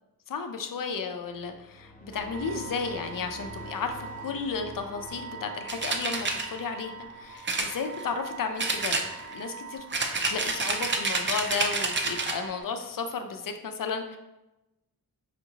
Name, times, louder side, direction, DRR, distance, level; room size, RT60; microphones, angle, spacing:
voice 1, 0.3-9.0 9.3-9.9 10.3-14.2, left 5 dB, 65° left, 6 dB, 0.5 m, -33 dB
sound 1, 1.2-7.9, equal, 20° left, 0.7 m, -47 dB
sound 2, 2.1-12.6, right 5 dB, 90° right, 1.4 m, -43 dB
sound 3, 5.7-6.5 7.4-8.3 8.6-9.4 9.9-12.4, right 3 dB, 30° right, 0.4 m, -29 dB
5.0 x 2.7 x 2.8 m, 0.98 s
wide cardioid pair, 100°, 37 cm